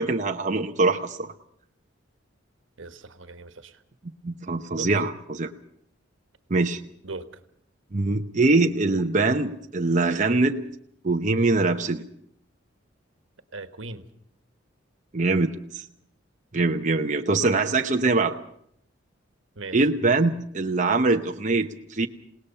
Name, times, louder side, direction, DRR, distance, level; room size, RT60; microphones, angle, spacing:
voice 1, 0.0-1.3 4.2-5.5 6.5-6.8 7.9-10.6 11.0-12.0 15.1-15.8 16.5-18.3 19.7-22.1, right 3 dB, 40° right, 4 dB, 0.8 m, -23 dB
voice 2, 2.8-3.8 4.8-5.1 7.0-7.2 13.5-14.0 19.5-19.9, right 3 dB, 85° right, 10 dB, 1.4 m, -38 dB
28.0 x 18.5 x 5.5 m, 0.70 s
head